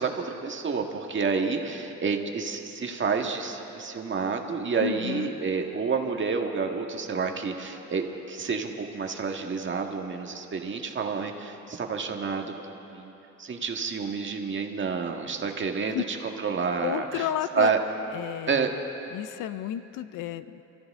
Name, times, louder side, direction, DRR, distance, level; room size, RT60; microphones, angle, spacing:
voice 1, 0.0-13.1 13.4-17.3 17.5-17.8 18.5-18.7, right 5 dB, 40° right, 3 dB, 1.7 m, -29 dB
voice 2, 4.8-5.3 15.9-16.0 16.8-17.7 18.1-18.7 19.1-20.6, left 12 dB, 90° left, 13 dB, 0.6 m, -32 dB
27.5 x 14.0 x 3.7 m, 3.0 s
cardioid pair, 90°, 30 cm